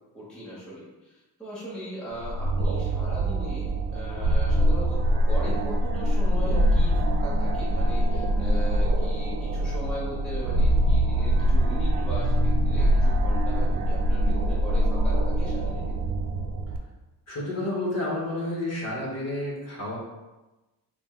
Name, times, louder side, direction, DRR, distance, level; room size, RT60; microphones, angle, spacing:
voice 1, 0.1-16.0, equal, ahead, -8 dB, 0.8 m, -39 dB
sound 1, 2.2-16.8, equal, 90° right, 0.6 m, -23 dB
voice 2, 17.3-20.0, left 1 dB, 40° left, -3 dB, 0.9 m, -30 dB
4.6 x 2.2 x 3.5 m, 1.1 s
cardioid pair, 175°, 42 cm